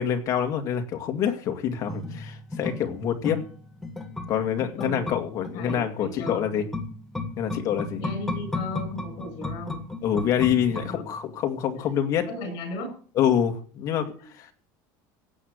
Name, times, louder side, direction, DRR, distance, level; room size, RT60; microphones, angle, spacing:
voice 1, 0.0-3.4 4.3-6.6 7.4-8.0 10.0-12.3 13.2-14.5, left 9 dB, 35° left, 5 dB, 2.1 m, -26 dB
sound 1, 1.9-11.4 11.7-11.8, left 2 dB, 5° left, 1.6 m, -35 dB
voice 2, 4.8-5.1 5.5-6.7 7.9-9.8 10.7-11.0 11.9-12.0 12.2-12.9, left 2 dB, 50° left, 6 dB, 7.8 m, -36 dB
16.0 x 9.1 x 6.6 m, 0.43 s
cardioid pair, 175°, 10 cm